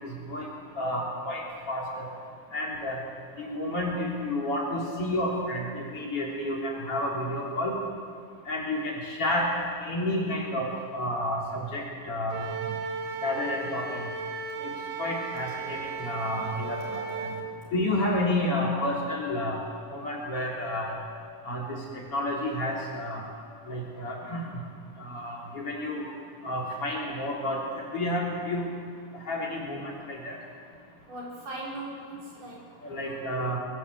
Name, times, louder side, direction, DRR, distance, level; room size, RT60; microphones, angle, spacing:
voice 1, 0.0-0.5 0.8-1.4 1.7-2.0 2.5-3.0 3.4-7.8 8.5-9.5 9.8-12.4 13.2-13.8 14.6-14.7 15.0-17.3 17.7-19.6 19.9-21.0 21.4-21.8 22.1-23.2 23.7-24.5 25.0-26.0 26.4-27.6 27.9-28.7 29.3-30.3 32.9-33.6, left 1 dB, 40° left, -2 dB, 4.3 m, -30 dB
Wind instrument woodwind instrument, 12.3-17.5, right 5 dB, 85° right, 3.5 m, -35 dB
voice 2, 31.1-33.2, right 2 dB, 65° right, -4 dB, 7.3 m, -40 dB
22.5 x 21.5 x 8.3 m, 2.2 s
omnidirectional pair, 4.1 m